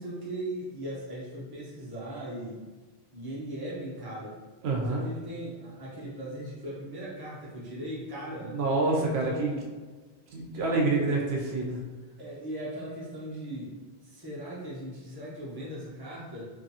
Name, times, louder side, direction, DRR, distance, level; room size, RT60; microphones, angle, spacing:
voice 1, 0.0-2.6 3.1-4.4 4.9-8.6 9.1-9.7 10.5-10.8 12.2-13.7 14.0-16.4, right 1 dB, 25° right, -7 dB, 0.7 m, -38 dB
voice 2, 4.6-5.0 8.3-9.5 10.3-11.8, right 3 dB, 75° right, -2 dB, 0.8 m, -27 dB
2.6 x 2.5 x 2.7 m, 1.3 s
omnidirectional pair, 1.1 m